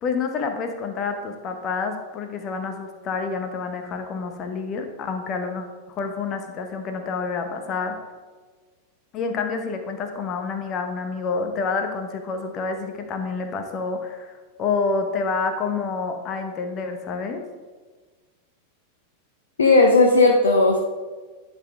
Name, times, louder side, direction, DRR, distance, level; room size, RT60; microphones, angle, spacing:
voice 1, 0.0-5.6 6.0-8.0 9.1-17.4, left 4 dB, 35° left, 5 dB, 0.9 m, -28 dB
voice 2, 19.6-20.8, left 3 dB, 70° left, 2 dB, 0.7 m, -15 dB
11.0 x 4.3 x 3.5 m, 1.4 s
figure-of-eight pair, 90°, 0 cm